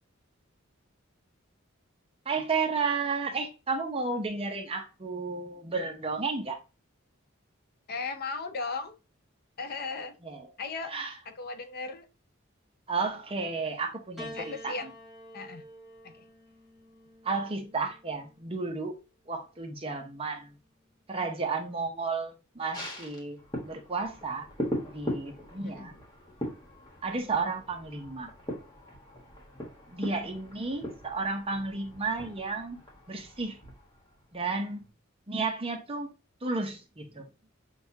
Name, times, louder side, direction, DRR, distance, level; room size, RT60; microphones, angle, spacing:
voice 1, 2.2-6.6 10.2-10.4 10.9-11.1 12.9-14.3 14.6-14.7 17.2-18.9 19.3-20.5 21.1-24.5 24.9-25.9 27.0-28.3 29.9-32.8 33.1-33.6 34.3-34.9 35.3-36.1 36.4-37.3, right 4 dB, 30° right, 0.7 m, -32 dB
voice 2, 7.9-8.9 9.6-10.2 10.6-11.0 11.2-12.1 14.3-14.9 15.3-15.6 16.0-16.3 25.6-25.9, left 4 dB, 50° left, 0.5 m, -36 dB
Piano, 14.2-18.7 19.7-20.4, equal, ahead, 0.9 m, -48 dB
sound 1, 22.7-34.4 34.8-34.9, equal, 20° left, 1.3 m, -40 dB
6.2 x 2.4 x 2.7 m
head